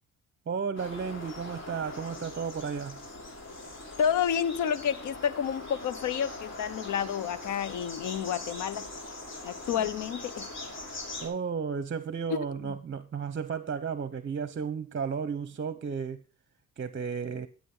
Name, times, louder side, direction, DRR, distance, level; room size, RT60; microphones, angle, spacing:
voice 1, 0.5-3.0 9.7-9.8 11.2-16.2 16.8-17.5, right 6 dB, 40° right, 1.0 m, -33 dB
sound 1, 0.8-11.3, left 2 dB, 40° left, 5.6 m, -42 dB
voice 2, 4.0-8.9 9.4-10.5 12.3-12.7, left 8 dB, 80° left, 1.2 m, -30 dB
12.5 x 8.6 x 3.9 m
cardioid pair, 90°, 30 cm